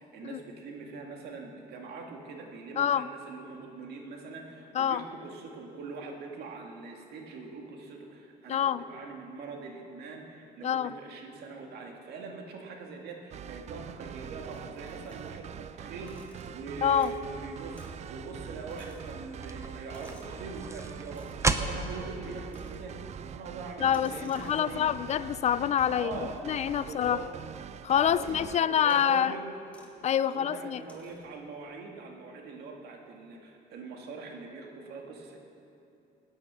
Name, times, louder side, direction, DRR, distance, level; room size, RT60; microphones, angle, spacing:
voice 1, 0.0-23.0 23.3-24.9 25.9-26.4 26.8-27.3 28.1-29.5 30.2-35.4, right 4 dB, 70° right, 2 dB, 2.1 m, -42 dB
voice 2, 2.8-3.1 4.7-5.0 8.5-8.8 10.6-10.9 16.8-17.1 23.8-26.1 26.5-27.2 27.8-29.3 30.0-30.8, left 9 dB, 40° left, 16 dB, 0.4 m, -26 dB
sound 1, 13.3-28.6, right 10 dB, 40° right, 0.4 m, -44 dB
sound 2, 14.5-15.6 15.9-17.3 17.7-18.0 18.3-20.4 21.1-21.6 22.5-23.0 23.8-25.1 25.8-27.5 28.1-28.5 28.8-29.1 29.7-30.0 30.8-31.4, left 1 dB, 10° left, 2.2 m, -57 dB
sound 3, 16.3-23.4, right 3 dB, 15° right, 0.7 m, -37 dB
17.5 x 9.9 x 6.2 m, 2.9 s
cardioid pair, 110°, 17 cm